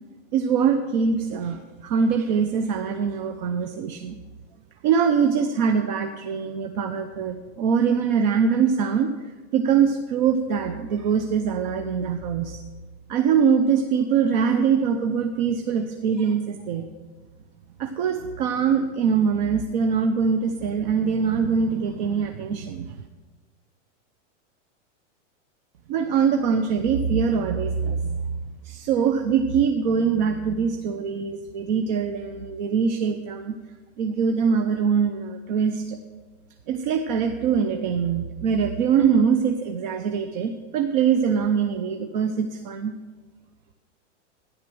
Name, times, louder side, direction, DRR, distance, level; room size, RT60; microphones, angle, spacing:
voice 1, 0.3-4.2 4.8-9.1 9.5-12.6 13.1-16.9 17.8-23.0 25.9-28.2 28.6-33.6 34.0-36.0 36.7-42.9, right 6 dB, 40° right, 6 dB, 0.8 m, -23 dB
12.0 x 10.0 x 7.7 m, 1.4 s
supercardioid pair, 170°, 37 cm